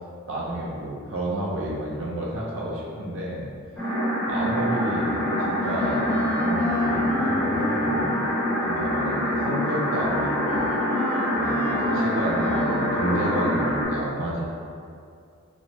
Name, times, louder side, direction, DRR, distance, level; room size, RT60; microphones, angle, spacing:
voice 1, 0.3-3.5 4.3-8.2 8.7-10.7 11.3-14.5, right 1 dB, 60° right, -4 dB, 0.5 m, -31 dB
sound 1, 3.8-13.8, equal, 5° left, 0.9 m, -25 dB
Wind instrument woodwind instrument, 5.6-13.1, left 1 dB, 35° right, 1.1 m, -33 dB
3.0 x 2.0 x 2.7 m, 2.3 s
head